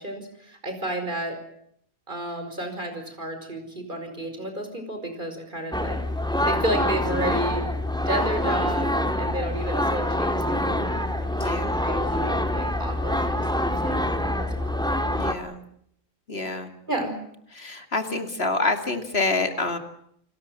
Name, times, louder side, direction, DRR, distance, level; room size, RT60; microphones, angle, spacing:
voice 1, 0.0-1.4 2.1-6.0 6.5-7.7 8.1-14.8 16.9-17.2, right 1 dB, 35° right, 6 dB, 5.4 m, -32 dB
sound 1, 5.7-15.3, left 1 dB, 5° left, 2.1 m, -25 dB
voice 2, 11.4-11.8 15.1-15.6 16.3-16.7 17.5-19.8, left 3 dB, 50° left, 7 dB, 2.8 m, -27 dB
30.0 x 20.0 x 7.5 m, 0.70 s
omnidirectional pair, 1.4 m